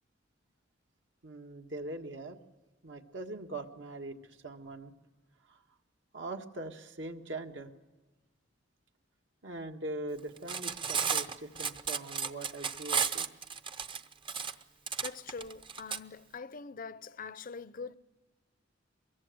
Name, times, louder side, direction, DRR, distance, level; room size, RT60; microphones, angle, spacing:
voice 1, 1.2-2.4 2.8-4.9 5.5-5.6 6.1-7.7 9.4-13.3, right 2 dB, 70° right, 1.7 m, -42 dB
Cutlery silverware, 10.4-16.0, right 6 dB, 25° right, 0.7 m, -33 dB
voice 2, 15.0-17.9, left 5 dB, 45° left, 0.7 m, -43 dB
23.5 x 22.0 x 7.8 m
head